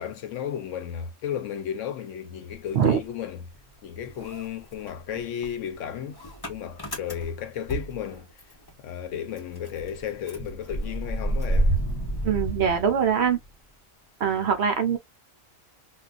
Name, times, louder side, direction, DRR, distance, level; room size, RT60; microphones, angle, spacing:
voice 1, 0.0-3.5 3.8-6.2 6.5-8.3 8.8-11.7, left 9 dB, 70° left, 0.9 m, -34 dB
Motor vehicle (road) / Engine starting, 2.5-3.8 4.0-8.7 9.0-9.1 9.4-13.5, right 1 dB, 25° left, 0.6 m, -30 dB
voice 2, 12.2-13.4 14.2-15.0, right 7 dB, 60° right, 0.9 m, -22 dB
3.5 x 2.4 x 2.4 m
omnidirectional pair, 1.4 m